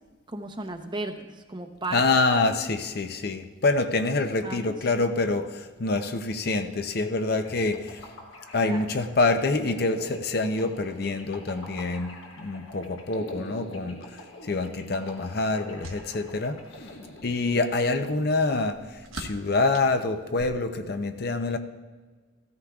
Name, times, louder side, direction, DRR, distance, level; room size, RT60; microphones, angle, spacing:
voice 1, 0.3-2.0 4.4-4.7 8.7-8.8, right 2 dB, 25° right, 0.7 m, -35 dB
voice 2, 1.9-8.1 8.5-16.6 17.2-21.6, left 3 dB, 50° left, 0.6 m, -26 dB
sound 1, 7.4-17.9, left 1 dB, 80° left, 1.4 m, -44 dB
sound 2, 14.7-20.8, right 3 dB, 90° right, 1.2 m, -47 dB
16.0 x 13.5 x 2.4 m
head